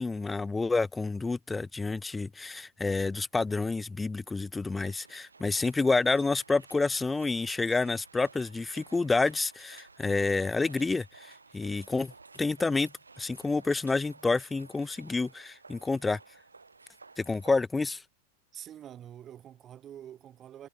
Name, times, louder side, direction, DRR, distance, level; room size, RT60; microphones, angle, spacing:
voice 1, 0.0-12.1 12.4-12.9 13.2-16.2 17.2-18.0, left 3 dB, 10° left, 0.3 m, -29 dB
sound 1, 4.8-17.6, right 4 dB, 80° right, 2.3 m, -55 dB
voice 2, 18.5-20.7, right 10 dB, 30° right, 1.9 m, -46 dB
figure-of-eight pair, 90°, 0 cm